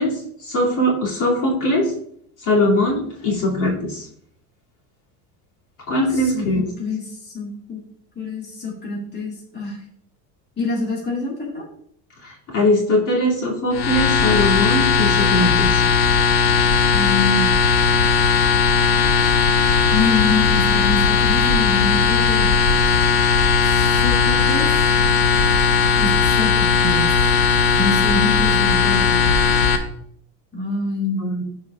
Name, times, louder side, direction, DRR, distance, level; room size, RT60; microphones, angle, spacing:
voice 1, 0.0-1.9 2.4-4.1 5.9-6.7 12.2-15.8 31.2-31.4, left 1 dB, 45° left, -3 dB, 2.6 m, -21 dB
voice 2, 6.1-7.8 8.2-9.8 10.6-11.7 16.9-17.5 19.9-22.5 23.7-24.9 26.0-27.3 27.8-29.6 30.5-31.2, left 3 dB, 25° left, -3 dB, 2.2 m, -26 dB
sound 1, 13.7-29.8, left 5 dB, 75° left, 1.2 m, -17 dB
14.0 x 4.8 x 2.4 m, 0.68 s
supercardioid pair, 130°, 42 cm